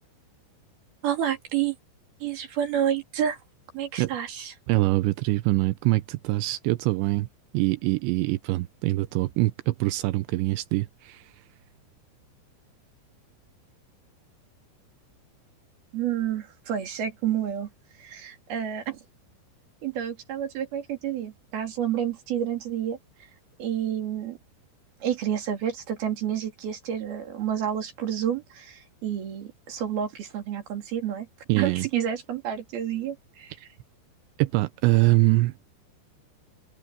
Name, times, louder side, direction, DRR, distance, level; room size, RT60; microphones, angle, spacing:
voice 1, 1.0-1.8 2.2-3.4 3.7-4.5 15.9-17.7 18.0-19.0 19.8-23.0 23.6-24.4 25.0-31.3 31.6-33.5, right 9 dB, 55° right, 4.7 m, -29 dB
voice 2, 4.7-7.3 7.5-11.4 31.5-31.9 33.6-33.7 34.4-35.6, right 19 dB, 80° right, 2.8 m, -24 dB
omnidirectional pair, 5.3 m